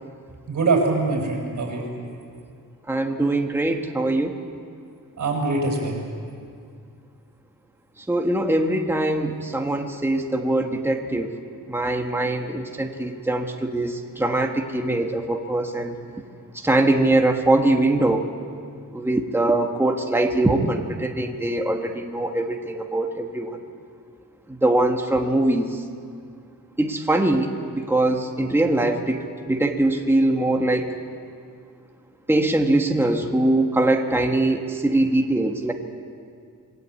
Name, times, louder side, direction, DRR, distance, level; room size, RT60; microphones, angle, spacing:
voice 1, 0.5-1.9 5.2-6.0, right 3 dB, 55° right, -1 dB, 7.1 m, -23 dB
voice 2, 2.9-4.4 8.0-11.3 11.7-16.0 16.5-18.3 18.9-23.6 24.5-25.8 26.8-30.9 32.3-35.7, right 2 dB, 5° right, 3 dB, 1.4 m, -22 dB
27.5 x 20.5 x 8.4 m, 2.3 s
wide cardioid pair, 170°, 34 cm